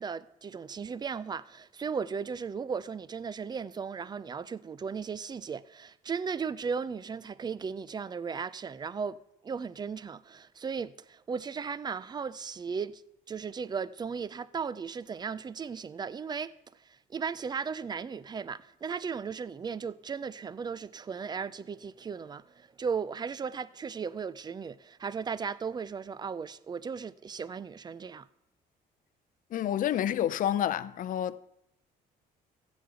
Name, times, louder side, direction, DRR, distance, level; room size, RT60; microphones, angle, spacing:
voice 1, 0.0-9.2 9.4-13.0 13.3-16.5 16.8-28.3, right 6 dB, 25° right, 0.5 m, -36 dB
voice 2, 29.5-31.4, left 11 dB, 55° left, 0.6 m, -29 dB
15.0 x 5.2 x 8.1 m
cardioid pair, 110°, 17 cm